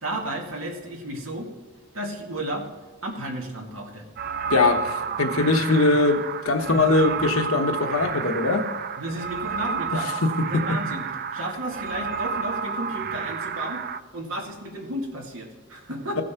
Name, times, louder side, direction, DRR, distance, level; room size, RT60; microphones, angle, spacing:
voice 1, 0.0-1.5 1.9-2.7 3.0-4.1 9.0-10.1 10.4-11.1 11.3-13.8 14.1-16.2, right 1 dB, 80° right, 1 dB, 2.2 m, -33 dB
sound 1, 4.2-14.0, right 6 dB, 45° right, 0.4 m, -31 dB
voice 2, 4.5-8.7 10.2-10.8, left 3 dB, 85° left, 5 dB, 1.1 m, -21 dB
16.0 x 6.3 x 4.5 m, 1.3 s
head